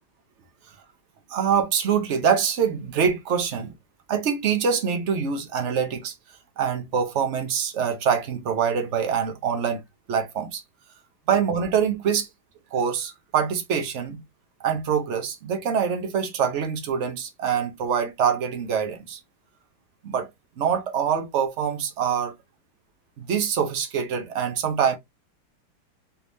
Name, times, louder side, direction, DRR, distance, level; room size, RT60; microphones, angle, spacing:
voice 1, 1.3-3.7 4.1-6.1 6.6-9.8 10.1-10.6 11.3-12.3 12.7-14.2 14.6-19.2 20.0-20.3 20.6-22.3 23.2-25.0, right 7 dB, 75° right, 0.6 m, -24 dB
4.5 x 3.4 x 2.6 m
omnidirectional pair, 2.3 m